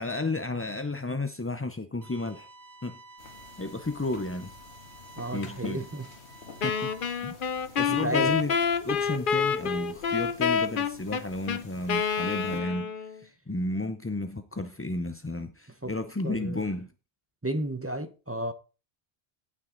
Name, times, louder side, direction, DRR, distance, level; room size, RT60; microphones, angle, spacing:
voice 1, 0.0-2.5 2.8-3.0 3.6-4.6 5.3-5.8 6.6-6.9 7.2-7.3 7.8-8.5 8.8-16.9, left 2 dB, 20° left, 0.4 m, -32 dB
sound 1, 2.0-7.1, right 2 dB, 65° right, 1.9 m, -51 dB
sound 2, 3.2-12.6, left 4 dB, 75° left, 1.7 m, -50 dB
voice 2, 5.2-6.1 7.9-8.3 15.8-15.9 16.2-16.6 17.4-18.5, right 1 dB, 15° right, 0.8 m, -32 dB
Wind instrument woodwind instrument, 6.6-13.2, left 6 dB, 55° left, 0.9 m, -28 dB
17.0 x 6.1 x 3.9 m
omnidirectional pair, 1.1 m